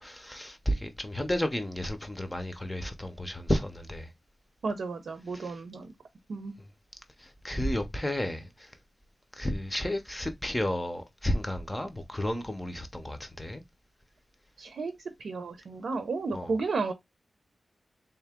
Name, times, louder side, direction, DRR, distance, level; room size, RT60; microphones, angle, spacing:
voice 1, 0.0-4.1 5.3-5.5 7.2-8.7 9.3-13.6 16.3-16.5, left 1 dB, 10° left, 0.6 m, -32 dB
voice 2, 4.6-5.9 6.3-6.6 14.6-14.9 15.2-16.9, right 4 dB, 80° right, 0.7 m, -33 dB
3.7 x 2.9 x 3.5 m
wide cardioid pair, 165°, 0 cm